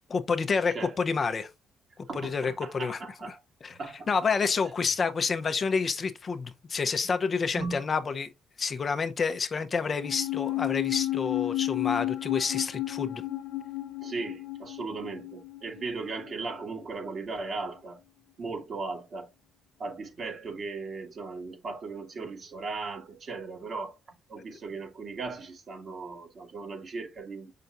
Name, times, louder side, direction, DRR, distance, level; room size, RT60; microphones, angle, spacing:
voice 1, 0.1-1.5 2.1-3.0 3.3-3.4 3.6-3.8 4.1-8.3 8.6-13.2, left 5 dB, 40° left, 0.7 m, -29 dB
voice 2, 2.1-3.4 3.8-4.1 7.5-7.9 14.0-18.0 18.4-19.3 19.8-24.0 24.3-27.5, right 3 dB, 50° right, 2.2 m, -37 dB
sound 1, 10.0-16.6 16.8-16.9, left 16 dB, 85° left, 0.7 m, -32 dB
6.6 x 5.7 x 2.5 m
cardioid pair, 90°, 0 cm